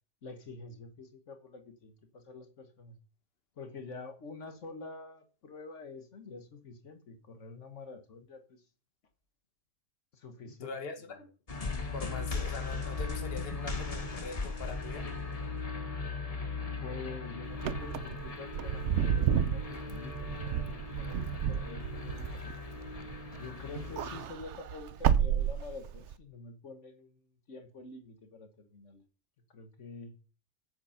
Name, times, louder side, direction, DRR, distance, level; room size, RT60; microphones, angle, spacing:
voice 1, 0.2-3.0 3.6-8.6 10.1-10.7 11.1-11.2 16.6-22.2 23.3-29.0 29.5-30.1, left 3 dB, 70° left, 1.6 m, -47 dB
voice 2, 10.6-11.3 11.9-15.1, left 4 dB, 50° left, 1.6 m, -43 dB
sound 1, 11.5-24.2, left 4 dB, 30° left, 1.3 m, -38 dB
Wind / Car, 17.5-23.4 23.7-26.1, right 9 dB, 70° right, 1.0 m, -31 dB
8.2 x 7.9 x 5.7 m
omnidirectional pair, 1.3 m